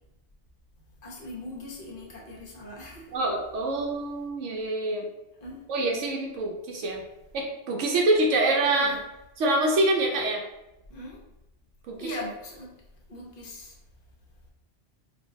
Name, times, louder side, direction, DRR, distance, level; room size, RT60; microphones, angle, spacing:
voice 1, 1.0-3.2 5.4-5.6 8.7-9.0 10.9-11.3 12.0-12.7 13.1-13.7, left 1 dB, 40° left, -3 dB, 0.9 m, -40 dB
voice 2, 3.1-5.1 5.7-7.0 7.3-9.0 9.4-10.4 11.9-12.1, right 2 dB, 90° right, 0 dB, 1.0 m, -25 dB
4.5 x 2.4 x 2.7 m, 0.91 s
omnidirectional pair, 1.2 m